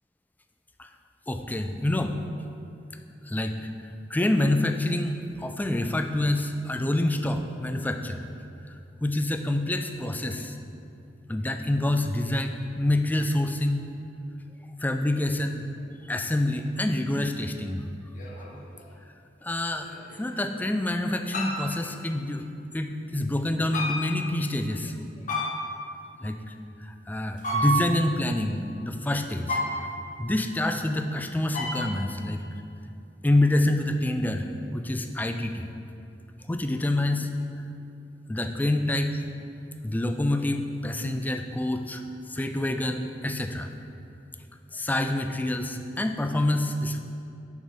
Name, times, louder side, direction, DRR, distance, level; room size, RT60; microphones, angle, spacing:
voice 1, 1.3-2.2 3.3-3.6 4.1-8.2 9.0-10.6 11.3-13.9 14.8-15.6 16.1-17.8 19.4-19.9 20.2-22.5 22.7-24.9 26.2-26.4 26.9-29.9 30.2-32.4 33.2-34.5 34.7-35.7 36.5-37.3 38.3-39.2 39.8-42.0 42.3-43.7 44.7-47.0, left 1 dB, 10° left, 6 dB, 0.3 m, -27 dB
sound 1, 16.5-16.6 18.1-18.8 19.8-20.5 21.3-21.8 23.7-24.3 25.3-25.9 27.4-28.1 29.5-30.2 31.5-32.1, equal, 45° left, 0.9 m, -31 dB
6.3 x 5.1 x 5.0 m, 2.7 s
head